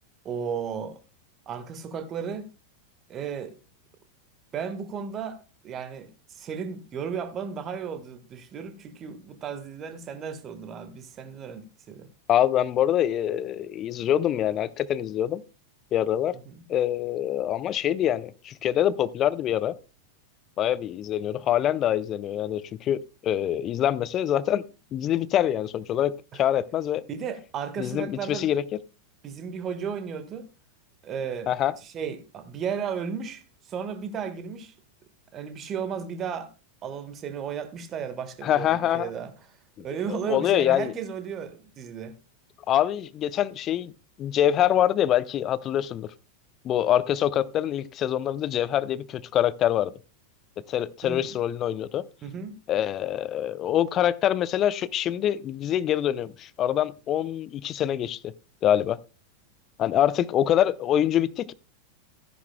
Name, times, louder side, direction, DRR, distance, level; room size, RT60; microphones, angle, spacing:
voice 1, 0.2-1.0 1.5-2.5 3.1-3.5 4.5-5.4 5.6-12.1 16.4-16.6 26.3-26.4 27.1-28.5 29.2-30.5 31.0-31.5 31.8-34.7 35.3-36.5 36.8-39.3 39.8-42.1 51.0-51.3 52.2-52.5, right 7 dB, 30° right, 1.5 m, -34 dB
voice 2, 12.3-15.4 15.9-16.4 16.7-19.8 20.6-24.6 24.9-27.0 27.8-28.6 31.5-31.7 38.4-39.1 40.1-40.9 42.7-43.9 44.2-46.1 46.6-49.9 50.7-52.1 52.7-58.3 58.6-59.0 59.8-61.5, left 11 dB, 30° left, 0.5 m, -25 dB
13.5 x 10.5 x 2.2 m
figure-of-eight pair, 90°, 0 cm